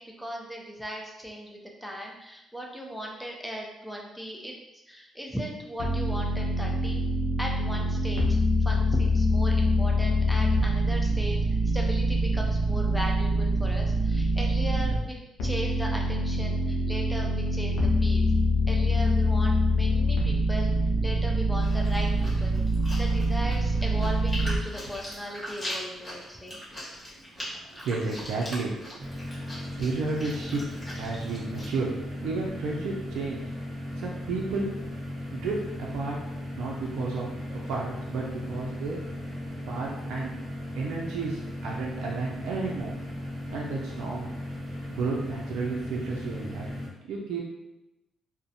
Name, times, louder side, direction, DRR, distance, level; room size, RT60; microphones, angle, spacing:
voice 1, 0.0-4.5 4.9-7.0 7.4-8.3 8.6-11.4 11.6-18.4 18.7-20.7 21.0-22.6 22.9-26.6, equal, ahead, -1 dB, 0.5 m, -37 dB
sound 1, 5.8-15.0 15.4-24.6, equal, 80° left, 0.4 m, -25 dB
Chewing mastication, 21.6-31.7, equal, 20° left, 1.1 m, -41 dB
voice 2, 27.8-28.8 29.2-29.5 29.8-31.9 32.2-33.4 34.0-34.8 35.3-36.2 36.6-39.0 39.7-40.3 40.7-42.9 43.5-44.3 44.9-46.7 47.1-47.4, right 3 dB, 85° right, -2 dB, 0.4 m, -32 dB
sound 2, 29.0-46.9, left 1 dB, 30° right, 0.8 m, -37 dB
2.5 x 2.1 x 2.6 m, 0.95 s
cardioid pair, 90°, 0 cm